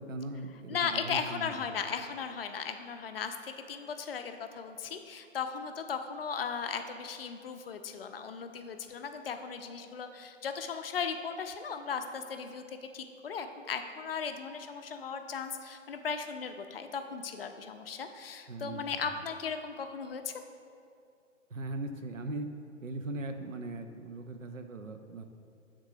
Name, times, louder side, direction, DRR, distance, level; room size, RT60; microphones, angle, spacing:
voice 1, 0.0-1.7 18.5-18.8 21.5-22.5 22.8-25.2, right 2 dB, 85° right, 7 dB, 0.6 m, -39 dB
voice 2, 0.7-20.3, left 6 dB, 50° left, 7 dB, 0.4 m, -37 dB
6.4 x 3.7 x 4.7 m, 2.4 s
figure-of-eight pair, 125°, 38 cm